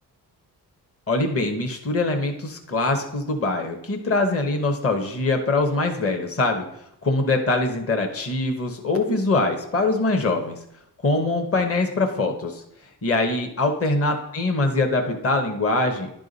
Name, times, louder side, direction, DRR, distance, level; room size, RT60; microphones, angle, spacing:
voice 1, 1.1-6.6 7.0-10.6 11.0-12.6 13.0-16.1, left 2 dB, 35° left, 4 dB, 1.1 m, -23 dB
11.0 x 3.6 x 4.0 m, 0.77 s
cardioid pair, 65°, 41 cm